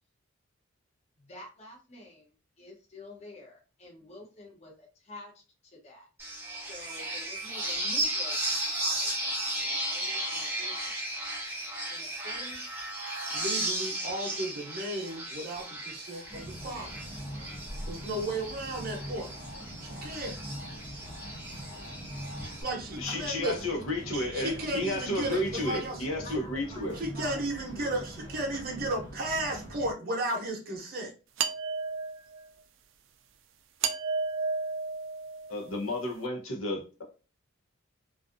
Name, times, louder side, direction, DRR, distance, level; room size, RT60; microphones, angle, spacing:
voice 1, 1.2-6.1 6.5-11.0 11.9-12.6 26.2-27.4 28.0-29.0, left 2 dB, 30° left, 0.7 m, -49 dB
sound 1, 6.2-22.6, right 1 dB, 10° right, 0.5 m, -35 dB
voice 2, 13.3-16.9 17.9-19.3 19.8-20.4 22.6-23.5 24.1-26.2 27.0-31.1, right 1 dB, 45° right, 0.7 m, -34 dB
sound 2, 16.3-29.9, equal, 55° left, 1.0 m, -43 dB
voice 3, 23.0-26.9 35.5-37.0, left 1 dB, 80° left, 0.8 m, -32 dB
sound 3, 31.4-32.5 33.8-35.7, right 5 dB, 65° right, 0.3 m, -32 dB
2.5 x 2.3 x 2.5 m
head